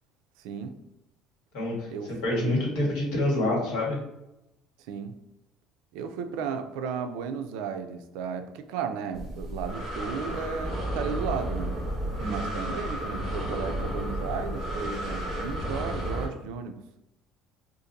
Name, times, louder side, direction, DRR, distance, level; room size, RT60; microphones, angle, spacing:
voice 1, 0.4-0.8 1.9-2.6 4.9-5.1 5.9-11.7 12.3-16.8, right 6 dB, 80° right, 7 dB, 0.3 m, -34 dB
voice 2, 1.5-4.0 12.2-12.5, left 1 dB, 70° left, -3 dB, 1.4 m, -27 dB
Breathing, 9.1-16.2, equal, 15° right, 1.5 m, -32 dB
4.0 x 2.5 x 2.6 m, 0.90 s
cardioid pair, 170°, 0 cm